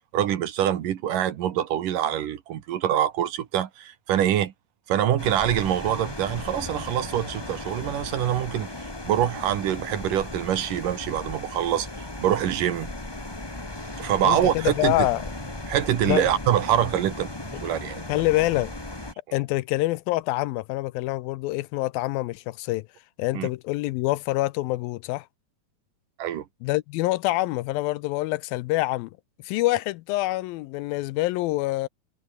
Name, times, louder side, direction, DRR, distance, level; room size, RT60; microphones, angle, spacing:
voice 1, 0.1-4.5 4.9-8.7 9.0-11.9 12.2-12.9 14.0-15.1 15.7-17.3 17.6-18.0 23.3-23.5 26.2-26.4, right 11 dB, 65° right, 2.8 m, -25 dB
sound 1, 5.2-19.1, left 2 dB, 30° left, 0.4 m, -36 dB
voice 2, 14.2-15.3 16.0-16.3 18.1-18.7 19.3-22.9 23.2-25.3 26.6-29.1 29.4-31.9, left 18 dB, 80° left, 2.3 m, -26 dB
omnidirectional pair, 4.4 m